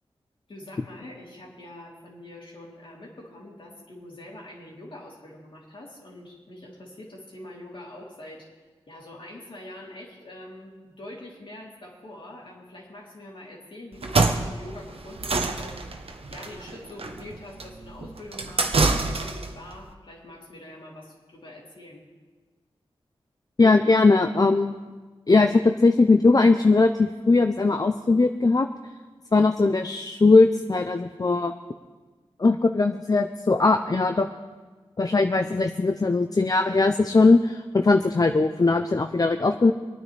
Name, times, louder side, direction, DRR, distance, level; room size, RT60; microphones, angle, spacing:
voice 1, 0.5-8.5 8.9-15.8 16.3-22.0, left 1 dB, 55° left, -3 dB, 3.3 m, -44 dB
sound 1, 13.9-19.6, right 3 dB, 70° right, 1.0 m, -26 dB
voice 2, 23.6-24.7 25.3-28.7 29.3-31.5 32.4-34.3 35.0-39.7, left 3 dB, 40° left, 7 dB, 0.6 m, -20 dB
25.5 x 9.5 x 3.4 m, 1.4 s
cardioid pair, 55°, 10 cm